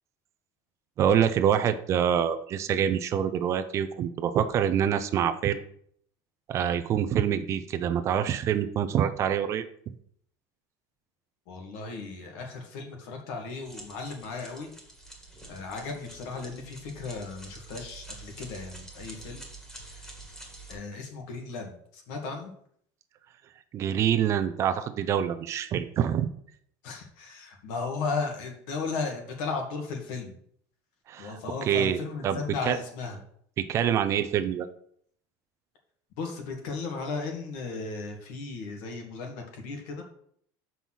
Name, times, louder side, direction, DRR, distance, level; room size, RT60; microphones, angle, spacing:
voice 1, 1.0-5.6 6.5-9.9 23.7-26.3 31.1-32.4 32.7-32.8 33.6-34.7, right 9 dB, 35° right, 10 dB, 0.6 m, -26 dB
voice 2, 11.5-14.7 15.5-19.4 19.7-20.1 20.7-22.5 26.8-30.4 31.2-33.2 36.2-40.0, left 4 dB, 65° left, 3 dB, 2.1 m, -35 dB
sound 1, 13.6-20.7, right 2 dB, 5° left, 1.8 m, -47 dB
5.9 x 5.5 x 6.2 m, 0.64 s
cardioid pair, 160°, 9 cm